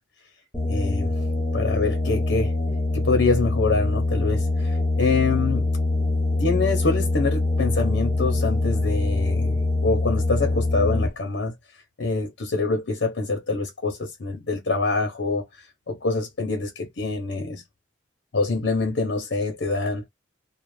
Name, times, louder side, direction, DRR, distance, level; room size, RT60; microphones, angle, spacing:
sound 1, 0.5-11.1, left 2 dB, 15° left, 1.0 m, -24 dB
voice 1, 0.7-1.1 1.5-2.5 2.9-5.7 6.4-11.5 12.0-15.4 15.9-17.6 18.3-20.1, left 3 dB, 75° left, 0.7 m, -25 dB
2.4 x 2.0 x 3.1 m
head